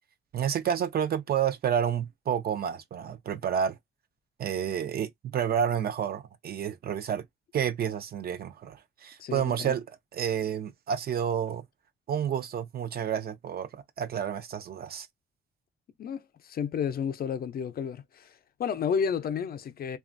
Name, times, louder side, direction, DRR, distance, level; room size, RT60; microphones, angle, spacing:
voice 1, 0.3-3.8 4.4-7.2 7.5-9.8 10.1-11.6 12.1-15.1, right 8 dB, 50° right, 0.5 m, -30 dB
voice 2, 9.2-9.7 16.0-20.0, left 7 dB, 50° left, 0.5 m, -32 dB
2.9 x 2.3 x 2.5 m
cardioid pair, 90°, 20 cm